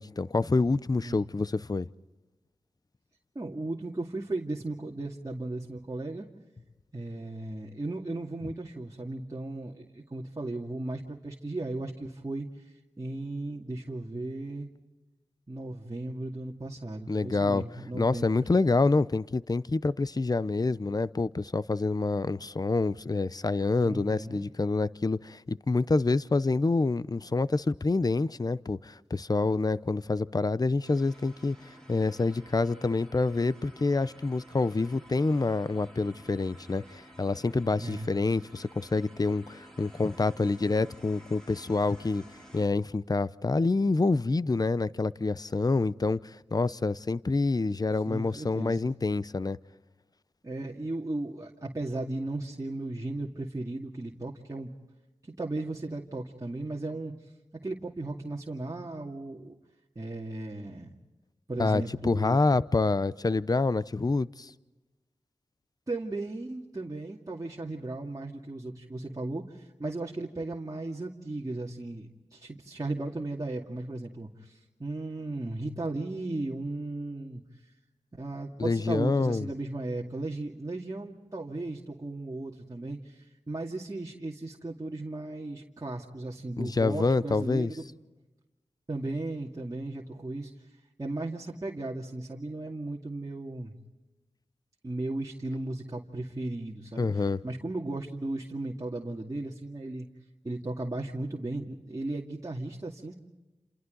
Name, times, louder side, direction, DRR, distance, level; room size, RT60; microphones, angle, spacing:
voice 1, 0.0-1.9 17.1-17.6 17.9-31.6 31.9-42.2 42.5-49.6 61.6-64.5 78.6-79.5 86.6-87.7 97.0-97.4, left 3 dB, 35° left, 0.7 m, -27 dB
voice 2, 3.3-6.3 6.9-14.7 15.5-18.5 23.8-24.5 37.8-38.1 48.1-48.9 50.4-54.7 55.2-57.1 57.6-59.5 60.0-60.9 61.5-62.4 65.9-77.4 78.1-87.8 88.9-90.5 91.0-93.7 94.8-100.1 100.4-103.1, right 2 dB, 30° right, 2.4 m, -36 dB
sound 1, 30.8-42.7, right 1 dB, 5° left, 5.8 m, -52 dB
29.5 x 28.0 x 4.0 m
cardioid pair, 45°, 12 cm